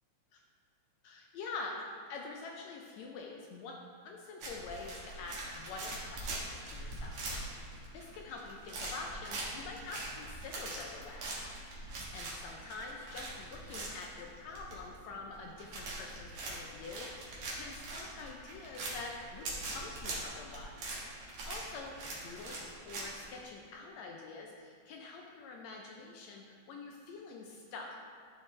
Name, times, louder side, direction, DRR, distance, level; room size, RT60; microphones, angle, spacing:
voice 1, 1.0-1.8 2.1-3.8 4.0-7.2 7.9-11.3 11.7-20.8 21.1-21.9 22.2-28.1, left 3 dB, 75° left, 0 dB, 1.6 m, -46 dB
sound 1, 4.4-23.5, right 2 dB, 70° right, 2.7 m, -42 dB
12.0 x 4.7 x 3.2 m, 2.3 s
omnidirectional pair, 3.6 m